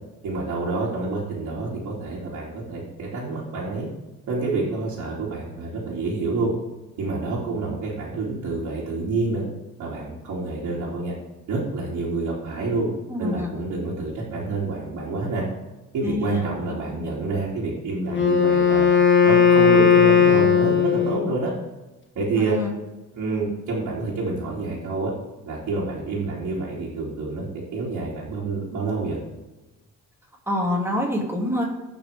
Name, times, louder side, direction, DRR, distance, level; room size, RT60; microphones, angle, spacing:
voice 1, 0.2-3.9 4.3-6.5 7.0-9.4 9.8-11.1 11.5-12.9 13.2-15.4 15.9-18.9 19.2-21.5 22.1-22.6 23.1-25.1 25.5-27.5 27.7-29.2, right 3 dB, 75° right, -7 dB, 2.8 m, -28 dB
voice 2, 13.1-13.5 16.0-16.5 16.9-17.1 22.3-22.7 30.5-31.6, left 1 dB, 10° right, -2 dB, 2.9 m, -26 dB
Wind instrument woodwind instrument, 18.1-21.4, left 7 dB, 40° left, 1.4 m, -17 dB
17.0 x 6.1 x 3.5 m, 1.0 s
cardioid pair, 90°, 30 cm